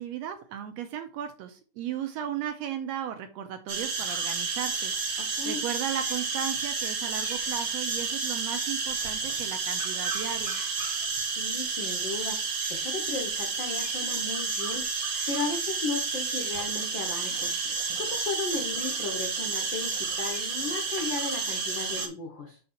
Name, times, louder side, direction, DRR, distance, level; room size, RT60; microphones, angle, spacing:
voice 1, 0.0-10.6, right 9 dB, 80° right, 7 dB, 1.6 m, -36 dB
sound 1, 3.7-22.1, right 4 dB, 50° right, 1.5 m, -31 dB
voice 2, 5.2-5.6 11.4-14.8 15.3-22.6, left 4 dB, 70° left, 2 dB, 1.1 m, -35 dB
6.5 x 2.8 x 5.7 m, 0.37 s
omnidirectional pair, 3.4 m